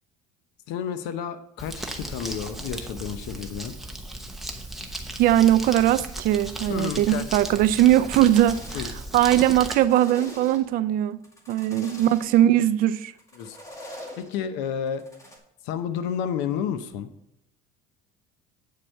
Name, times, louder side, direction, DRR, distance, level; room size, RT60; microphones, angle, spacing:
voice 1, 0.7-3.8 6.7-7.6 8.7-8.9 11.8-11.9 13.3-13.6 14.2-15.0 15.6-17.1, left 8 dB, 75° left, 0.8 m, -31 dB
Crumpling crinkling, 1.6-9.7, right 1 dB, ahead, 1.0 m, -36 dB
voice 2, 5.2-8.6 9.1-11.2 11.5-13.1, right 12 dB, 50° right, 0.4 m, -20 dB
sound 1, 8.0-9.1 9.4-10.8 11.2-12.4 13.2-14.3 14.9-15.4, left 1 dB, 15° left, 2.0 m, -43 dB
8.6 x 4.4 x 6.4 m
cardioid pair, 135°, 18 cm